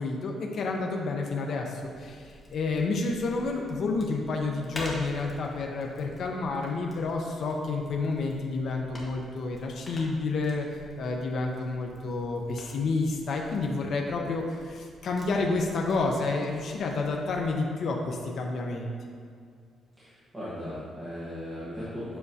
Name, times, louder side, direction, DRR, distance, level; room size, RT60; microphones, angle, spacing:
voice 1, 0.0-10.7 11.0-18.9, left 3 dB, 50° left, 1 dB, 0.5 m, -30 dB
sound 1, 1.8-17.5, left 1 dB, 20° left, 1.1 m, -48 dB
voice 2, 20.0-22.2, equal, 5° right, -11 dB, 1.2 m, -37 dB
7.6 x 5.8 x 2.7 m, 2.2 s
cardioid pair, 175°, 0 cm